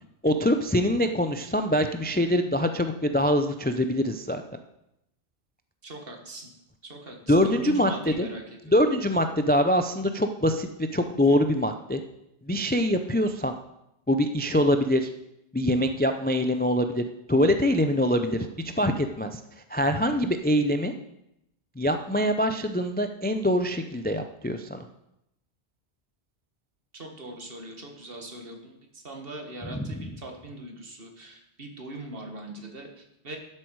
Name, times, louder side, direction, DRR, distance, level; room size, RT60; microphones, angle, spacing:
voice 1, 0.2-4.4 7.3-8.3 8.7-12.0 12.5-13.5 14.1-15.1 15.5-18.5 18.8-19.4 19.7-20.9 21.8-24.9 29.7-30.2, equal, 15° left, 7 dB, 0.3 m, -24 dB
voice 2, 5.8-6.5 6.8-8.8 26.9-33.4, right 1 dB, 55° right, 3 dB, 1.8 m, -41 dB
12.0 x 7.7 x 4.7 m, 0.84 s
omnidirectional pair, 1.1 m